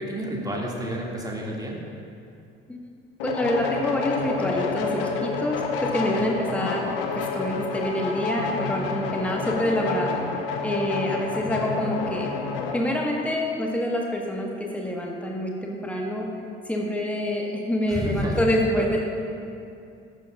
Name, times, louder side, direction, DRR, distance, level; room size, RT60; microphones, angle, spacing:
voice 1, 0.0-1.8 11.4-11.7 17.9-18.4 18.8-19.0, equal, 10° right, -2 dB, 2.2 m, -31 dB
sound 1, 3.2-12.8, left 4 dB, 65° left, 1.0 m, -29 dB
voice 2, 3.2-10.2 10.6-12.3 12.7-16.3 16.6-19.0, left 1 dB, 5° left, 0 dB, 1.4 m, -27 dB
14.0 x 11.0 x 2.4 m, 2.6 s
figure-of-eight pair, 55°, 30 cm